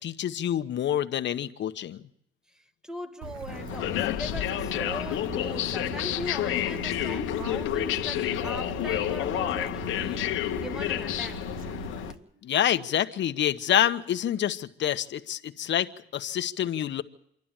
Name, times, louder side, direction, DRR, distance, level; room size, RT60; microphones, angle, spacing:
voice 1, 0.0-2.0 12.4-17.0, left 10 dB, 65° left, 1.2 m, -27 dB
voice 2, 2.5-11.5 12.2-12.5, equal, 5° right, 1.7 m, -40 dB
Bird / Stream, 3.2-12.1, right 6 dB, 85° right, 1.4 m, -40 dB
sound 1, 3.5-12.1, left 13 dB, 90° left, 1.2 m, -30 dB
26.5 x 12.0 x 9.0 m
cardioid pair, 90°, 20 cm